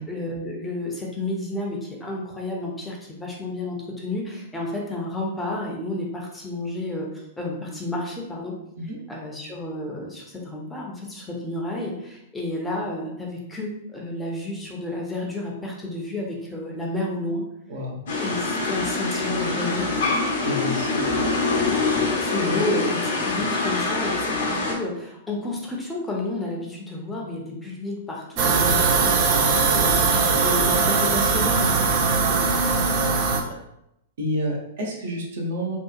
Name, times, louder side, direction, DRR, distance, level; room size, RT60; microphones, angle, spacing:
voice 1, 0.1-8.6 9.1-17.4 18.2-20.1 22.2-32.5, left 2 dB, 10° left, -2 dB, 0.6 m, -31 dB
voice 2, 17.7-18.0 20.4-21.1 22.5-22.6 28.6-28.9 34.2-35.8, equal, 60° right, -2 dB, 0.8 m, -29 dB
sound 1, 18.1-24.8, left 3 dB, 60° left, 0.7 m, -24 dB
sound 2, 28.4-33.4, right 4 dB, 45° right, 0.4 m, -20 dB
2.7 x 2.3 x 2.4 m, 0.80 s
figure-of-eight pair, 105°, 0 cm